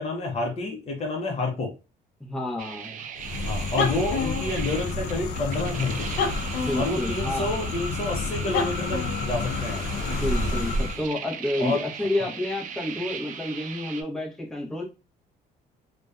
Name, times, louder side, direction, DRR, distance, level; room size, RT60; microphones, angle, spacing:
voice 1, 0.0-1.7 3.4-6.1 6.8-9.9 11.6-11.8, left 2 dB, 40° left, 1 dB, 0.6 m, -29 dB
voice 2, 2.2-3.0 6.6-7.8 10.1-14.8, left 1 dB, 5° left, -2 dB, 0.7 m, -30 dB
sound 1, 2.6-14.0, right 8 dB, 50° right, 0.4 m, -39 dB
sound 2, 3.2-11.1, left 3 dB, 85° left, 0.5 m, -29 dB
2.6 x 2.2 x 2.3 m, 0.29 s
cardioid pair, 110°, 17 cm